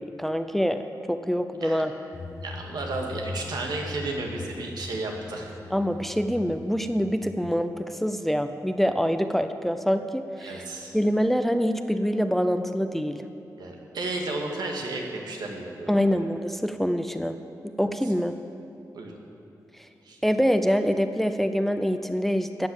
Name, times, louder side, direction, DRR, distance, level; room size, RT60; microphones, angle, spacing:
voice 1, 0.0-1.9 5.7-10.6 10.9-13.2 15.9-17.4 17.8-18.3 20.2-22.7, equal, 5° left, 8 dB, 0.6 m, -25 dB
sound 1, 2.1-7.6, left 3 dB, 40° left, 0.9 m, -40 dB
voice 2, 2.4-5.6 10.4-11.0 13.6-16.3 18.0-18.1 18.9-19.2 20.0-20.2, right 2 dB, 85° right, 0 dB, 2.2 m, -33 dB
15.0 x 9.6 x 7.2 m, 3.0 s
wide cardioid pair, 120°, 7 cm